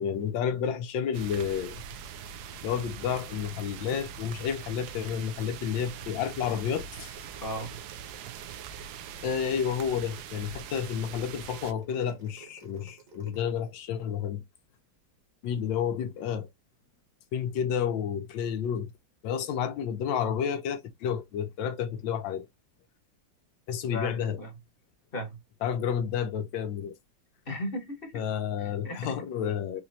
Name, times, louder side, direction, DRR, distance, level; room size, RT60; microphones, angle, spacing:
voice 1, 0.0-1.8 2.6-7.1 9.2-14.4 15.4-16.5 17.3-18.9 19.2-22.5 23.7-24.4 25.6-27.0 28.1-29.8, left 8 dB, 80° left, 1.4 m, -30 dB
sound 1, 1.1-11.7, right 8 dB, 70° right, 1.0 m, -42 dB
sound 2, 6.9-13.5, right 6 dB, 50° right, 1.5 m, -54 dB
voice 2, 7.4-7.8 23.9-24.5 25.1-25.4 27.5-28.2 28.6-29.2, equal, 35° left, 1.0 m, -36 dB
4.2 x 3.0 x 2.6 m
omnidirectional pair, 2.0 m